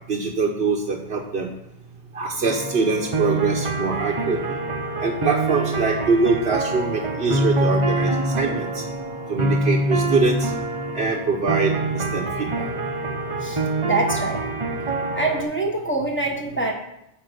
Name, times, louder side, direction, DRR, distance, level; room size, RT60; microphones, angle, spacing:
voice 1, 0.1-1.5 2.1-4.6 5.0-8.8 9.3-10.5 10.9-12.7, right 4 dB, 70° right, -1 dB, 1.2 m, -23 dB
sound 1, 2.4-15.4, right 2 dB, 30° right, 0.8 m, -25 dB
voice 2, 13.4-14.4 15.1-16.7, right 2 dB, 10° left, 0 dB, 1.2 m, -25 dB
9.0 x 5.1 x 6.7 m, 0.83 s
omnidirectional pair, 1.1 m